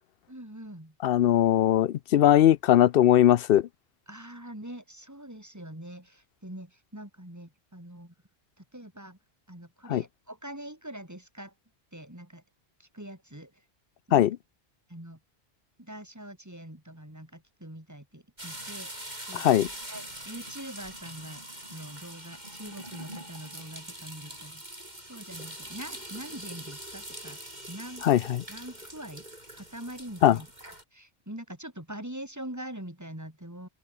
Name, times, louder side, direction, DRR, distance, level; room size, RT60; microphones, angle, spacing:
voice 1, 0.3-0.9 4.1-8.1 8.6-9.2 9.5-11.5 11.9-12.4 12.8-13.6 14.1-14.2 14.9-15.2 15.8-18.9 19.3-19.5 19.9-24.6 25.0-27.4 27.7-28.1 28.5-29.2 29.5-30.5 30.9-33.7, right 1 dB, 15° right, 4.2 m, -43 dB
voice 2, 1.0-3.7 9.9-10.0 14.1-14.4 19.3-19.7 28.0-28.4 30.2-30.4, left 11 dB, 65° left, 0.7 m, -20 dB
sound 1, 18.4-30.8, right 1 dB, 45° right, 8.0 m, -43 dB
omnidirectional pair, 1.1 m